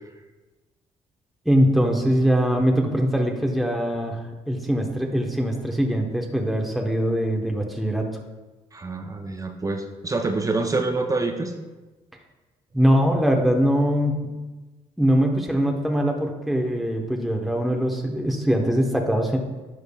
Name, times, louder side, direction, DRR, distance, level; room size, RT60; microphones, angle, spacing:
voice 1, 1.4-4.2 4.5-8.1 12.7-14.3 15.0-19.4, equal, ahead, 1 dB, 1.1 m, -22 dB
voice 2, 8.7-11.5, right 3 dB, 25° right, 4 dB, 0.7 m, -26 dB
10.5 x 6.4 x 2.3 m, 1.2 s
supercardioid pair, 65°, 13 cm